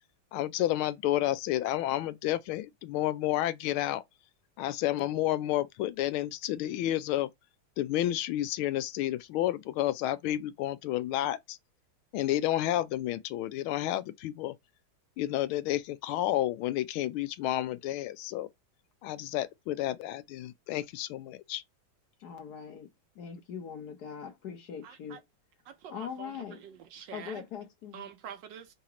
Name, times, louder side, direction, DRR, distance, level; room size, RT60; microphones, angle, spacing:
voice 1, 0.3-4.0 4.6-7.3 7.8-11.6 12.1-14.5 15.2-18.5 19.0-21.6, left 14 dB, 90° left, 1.4 m, -30 dB
voice 2, 22.2-22.9 23.1-25.2 25.9-26.6 27.1-28.1, left 7 dB, 60° left, 1.3 m, -41 dB
voice 3, 24.8-25.2 25.7-26.3 26.6-27.4 27.9-28.7, right 8 dB, 70° right, 1.2 m, -46 dB
3.8 x 2.9 x 4.8 m
omnidirectional pair, 2.2 m